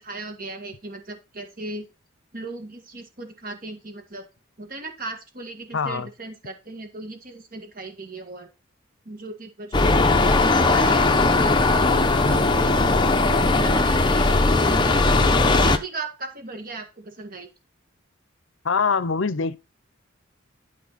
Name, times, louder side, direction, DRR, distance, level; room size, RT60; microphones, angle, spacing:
voice 1, 0.0-1.9 2.3-4.3 4.6-8.5 9.1-11.5 11.9-12.8 13.3-17.5, right 2 dB, 45° right, 1.8 m, -37 dB
voice 2, 5.7-6.1 12.2-12.4 18.6-19.6, left 5 dB, 65° left, 0.7 m, -24 dB
sound 1, 9.7-15.8, left 3 dB, 20° left, 0.8 m, -19 dB
12.0 x 5.1 x 4.2 m
head